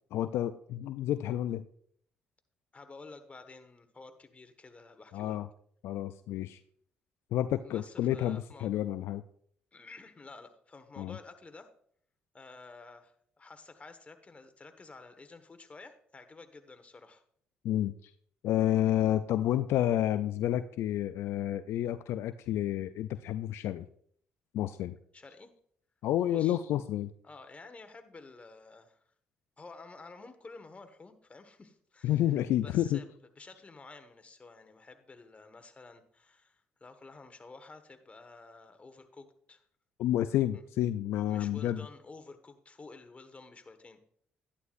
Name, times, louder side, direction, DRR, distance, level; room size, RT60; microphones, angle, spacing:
voice 1, 0.1-1.6 5.1-5.5 5.8-6.6 7.3-9.2 11.0-11.2 17.6-18.1 18.4-23.9 24.5-25.0 26.0-27.1 32.0-33.0 40.0-41.8, left 12 dB, 75° left, 11 dB, 0.4 m, -30 dB
voice 2, 2.7-5.4 7.6-8.7 9.7-11.7 12.3-17.2 25.1-25.5 26.3-26.6 27.2-29.0 29.6-32.2 32.6-33.1 33.4-39.6 40.5-40.6 41.3-44.0, left 3 dB, 30° left, 8 dB, 1.5 m, -51 dB
11.5 x 11.0 x 2.6 m, 0.63 s
hypercardioid pair, 55°, 4 cm